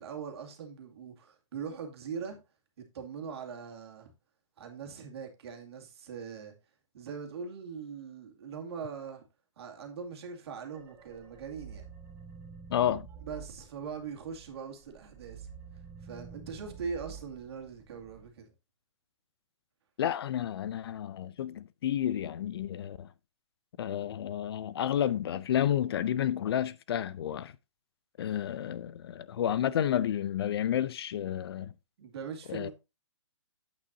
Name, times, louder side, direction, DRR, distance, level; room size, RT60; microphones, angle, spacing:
voice 1, 0.0-2.4 2.9-4.1 4.6-6.5 6.9-9.2 9.6-11.9 13.2-15.5 16.0-18.5 32.0-32.7, right 6 dB, 55° right, 2.2 m, -41 dB
sound 1, 10.6-14.5 14.9-18.3, right 6 dB, 20° right, 3.5 m, -49 dB
voice 2, 12.7-13.1 20.0-23.1 23.8-27.5 28.2-31.7 32.5-32.7, left 10 dB, 50° left, 0.5 m, -31 dB
8.7 x 8.5 x 2.7 m
hypercardioid pair, 140°, 16 cm